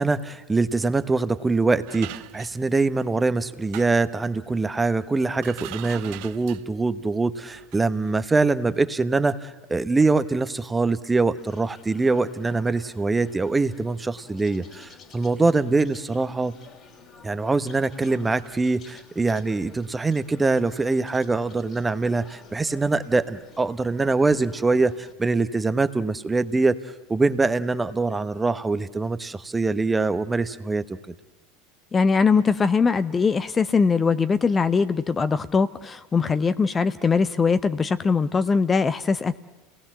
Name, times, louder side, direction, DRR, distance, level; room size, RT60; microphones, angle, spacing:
voice 1, 0.0-16.6 17.2-26.8 27.1-31.1, right 3 dB, 15° right, 12 dB, 1.0 m, -23 dB
sound 1, 1.9-3.1 3.6-4.2 5.0-5.1 5.3-6.8 7.4-8.1, right 17 dB, 65° right, 0.7 m, -41 dB
sound 2, 11.4-25.1, left 5 dB, 45° left, 3.0 m, -51 dB
voice 2, 31.9-39.4, left 5 dB, 25° left, 13 dB, 0.7 m, -21 dB
28.0 x 18.5 x 7.5 m, 1.1 s
hypercardioid pair, 85°, 0 cm